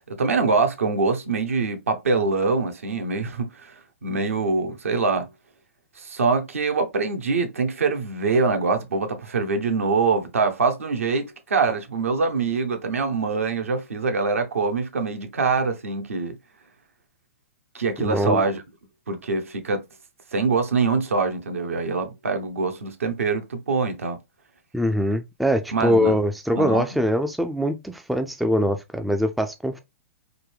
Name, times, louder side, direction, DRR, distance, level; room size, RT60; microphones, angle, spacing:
voice 1, 0.0-3.7 4.0-5.3 6.0-16.4 17.7-18.6 19.1-19.8 20.3-24.2 25.7-26.2 26.6-26.9, right 4 dB, 75° right, 0.8 m, -24 dB
voice 2, 18.0-18.4 24.7-29.8, equal, ahead, 0.3 m, -23 dB
3.8 x 2.2 x 3.2 m
figure-of-eight pair, 115°, 8 cm